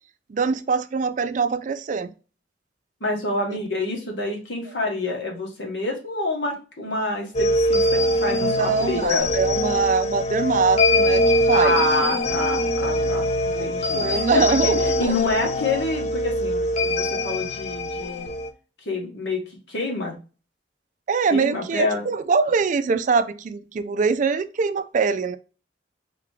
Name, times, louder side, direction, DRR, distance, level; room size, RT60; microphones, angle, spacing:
voice 1, 0.3-2.1 8.3-11.8 12.8-13.1 13.5-14.9 21.1-25.4, right 5 dB, 45° right, 0.4 m, -23 dB
voice 2, 3.0-9.3 11.5-18.3 18.8-20.2 21.3-22.1, left 2 dB, 80° left, 1.5 m, -27 dB
sound 1, 7.3-18.5, left 1 dB, 40° left, 0.5 m, -23 dB
3.7 x 3.5 x 3.2 m
head